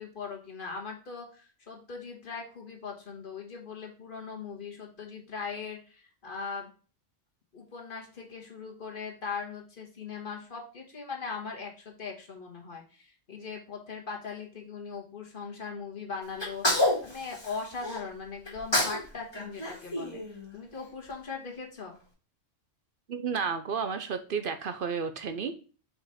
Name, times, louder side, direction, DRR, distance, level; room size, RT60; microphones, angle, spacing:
voice 1, 0.0-6.7 7.5-20.2 20.5-21.9, left 5 dB, 45° left, 0 dB, 1.5 m, -40 dB
Sneeze, 16.4-18.0 18.5-19.1 19.3-20.8, left 1 dB, 20° left, 2.1 m, -29 dB
voice 2, 23.1-25.5, right 6 dB, 55° right, 9 dB, 0.7 m, -32 dB
5.1 x 5.0 x 4.1 m, 0.36 s
omnidirectional pair, 1.2 m